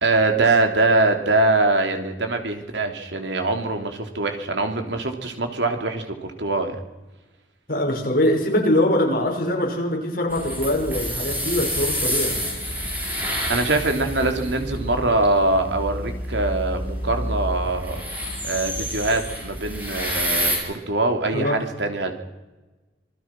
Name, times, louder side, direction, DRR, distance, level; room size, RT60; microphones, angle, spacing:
voice 1, 0.0-6.8 13.2-18.0 18.4-22.2, right 2 dB, 75° right, 5 dB, 3.3 m, -23 dB
voice 2, 7.7-12.4 21.3-21.6, left 1 dB, 55° left, 1 dB, 5.9 m, -22 dB
sound 1, 10.3-20.6, equal, 10° right, 7.6 m, -28 dB
26.5 x 20.0 x 6.1 m, 1.1 s
head